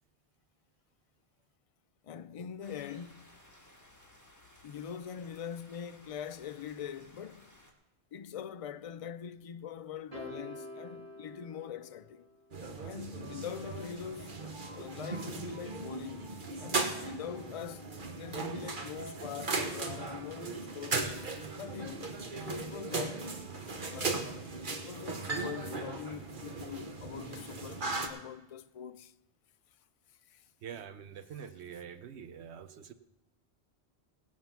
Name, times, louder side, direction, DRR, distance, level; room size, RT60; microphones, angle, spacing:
voice 1, 2.0-3.4 4.6-7.6 8.1-12.3 12.8-14.4 14.7-21.1 21.6-22.1 22.5-23.4 23.9-29.1 30.3-30.4, left 8 dB, 55° left, 0.4 m, -43 dB
sound 1, 2.6-7.7, left 1 dB, 15° left, 1.9 m, -59 dB
sound 2, 10.1-12.5, left 1 dB, 35° right, 3.1 m, -47 dB
sound 3, 12.5-28.1, right 3 dB, 50° right, 1.3 m, -37 dB
voice 2, 30.6-32.9, right 8 dB, 85° right, 1.1 m, -45 dB
17.5 x 7.4 x 5.9 m
omnidirectional pair, 1.1 m